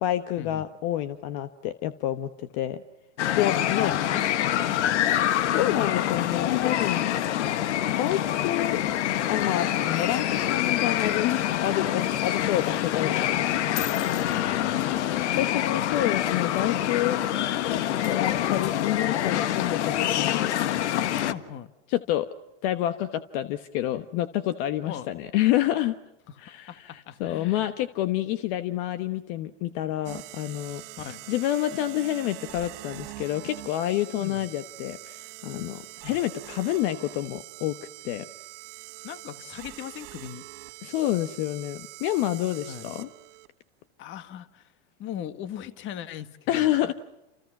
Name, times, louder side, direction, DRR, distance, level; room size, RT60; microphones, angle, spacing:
voice 1, 0.0-2.8 3.3-4.0 5.5-7.1 8.0-8.8 9.3-13.7 14.3-17.2 18.0-20.5 21.9-22.3 22.6-26.0 26.4-30.8 31.3-37.8 38.0-38.3 40.8-43.1 46.5-46.9, left 13 dB, 50° left, 11 dB, 1.2 m, -28 dB
sound 1, 3.2-21.3, left 11 dB, 80° left, 1.6 m, -26 dB
voice 2, 3.8-5.0 7.4-7.7 13.9-14.8 18.2-18.4 21.3-21.7 24.9-25.1 26.3-26.4 26.7-27.7 31.0-31.2 34.2-34.5 36.0-36.2 39.0-40.4 42.7-42.9 44.0-44.7 45.0-46.9, left 10 dB, 35° left, 11 dB, 1.7 m, -39 dB
sound 2, 30.0-43.5, right 20 dB, 55° right, 1.7 m, -44 dB
29.0 x 28.5 x 6.1 m, 0.96 s
supercardioid pair, 145°, 34 cm